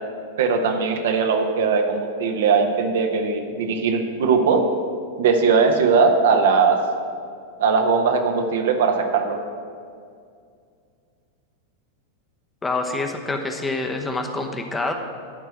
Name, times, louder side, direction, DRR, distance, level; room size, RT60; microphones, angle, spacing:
voice 1, 0.4-4.6 5.2-6.8 7.6-9.4, right 5 dB, 60° right, 4 dB, 1.0 m, -19 dB
voice 2, 12.6-14.9, left 2 dB, 15° left, 4 dB, 0.9 m, -26 dB
12.5 x 4.5 x 7.6 m, 2.3 s
figure-of-eight pair, 90°, 0 cm